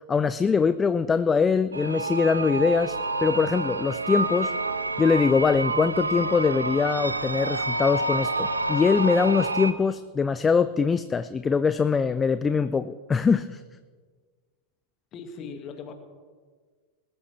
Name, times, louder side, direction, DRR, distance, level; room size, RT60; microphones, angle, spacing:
voice 1, 0.1-4.5 5.0-13.6, left 5 dB, 15° left, 13 dB, 0.4 m, -23 dB
sound 1, 1.7-9.7, right 2 dB, 80° right, 0.7 m, -28 dB
voice 2, 15.1-15.9, left 5 dB, 35° left, 5 dB, 2.0 m, -39 dB
20.5 x 13.0 x 3.4 m, 1.5 s
figure-of-eight pair, 90°, 0 cm